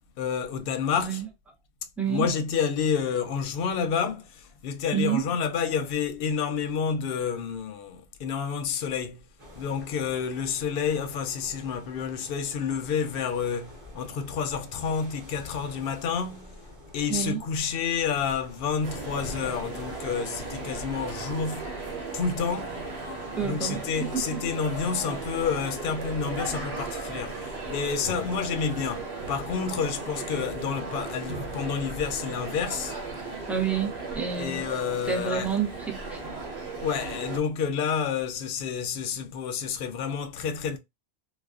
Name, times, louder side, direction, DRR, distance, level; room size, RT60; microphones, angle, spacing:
voice 1, 0.2-1.2 2.1-9.2 9.6-16.5 16.9-21.7 22.1-22.8 23.4-27.4 27.7-33.0 34.4-35.5 36.8-40.8, left 6 dB, 65° left, 0.7 m, -29 dB
voice 2, 2.0-2.3 4.9-5.3 17.1-17.4 23.4-23.8 24.1-24.4 33.5-34.6 35.1-36.2, right 7 dB, ahead, 0.4 m, -28 dB
sound 1, 9.4-29.0, left 1 dB, 60° right, 1.1 m, -47 dB
sound 2, 18.8-37.4, right 3 dB, 80° right, 1.1 m, -36 dB
2.4 x 2.3 x 2.3 m
omnidirectional pair, 1.1 m